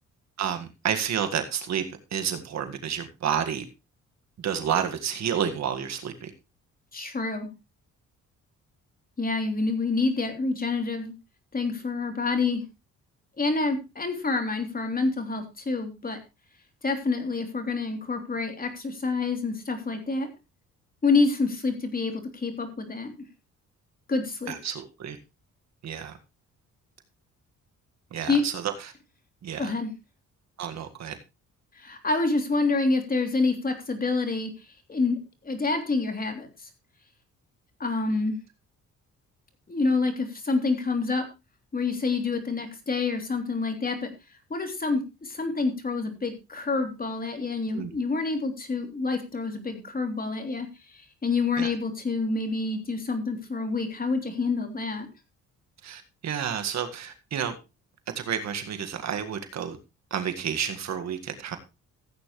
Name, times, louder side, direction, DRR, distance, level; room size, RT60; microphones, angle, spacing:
voice 1, 0.4-1.8 2.1-3.7 4.4-6.3 24.5-25.2 25.8-26.2 28.1-28.7 29.4-29.7 30.6-31.2 47.7-47.9 51.6-51.7 55.8-57.5 58.2-59.8 60.1-61.6, right 8 dB, 60° right, 7 dB, 1.8 m, -30 dB
voice 2, 6.9-7.5 9.2-11.1 11.5-12.6 13.4-16.2 16.8-20.3 21.0-23.1 24.1-24.6 28.3-28.4 29.6-29.9 31.7-34.5 34.9-35.2 35.4-36.7 37.8-38.4 39.7-41.2 41.7-44.1 44.5-55.1, left 3 dB, 30° left, 5 dB, 3.3 m, -27 dB
15.5 x 9.0 x 3.2 m, 0.26 s
cardioid pair, 90°, 30 cm